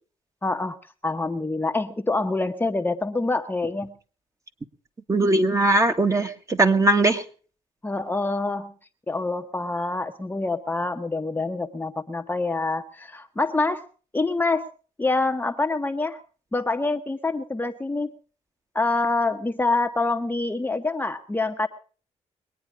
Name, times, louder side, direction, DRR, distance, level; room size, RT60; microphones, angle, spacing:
voice 1, 0.4-0.8 1.0-3.9 7.8-8.7 9.1-13.8 14.1-14.7 15.0-16.2 16.5-18.1 18.7-21.7, left 3 dB, 15° left, 6 dB, 0.9 m, -26 dB
voice 2, 5.1-7.2, right 2 dB, 25° right, 6 dB, 1.7 m, -20 dB
22.0 x 9.4 x 5.0 m, 0.40 s
cardioid pair, 80°, 12 cm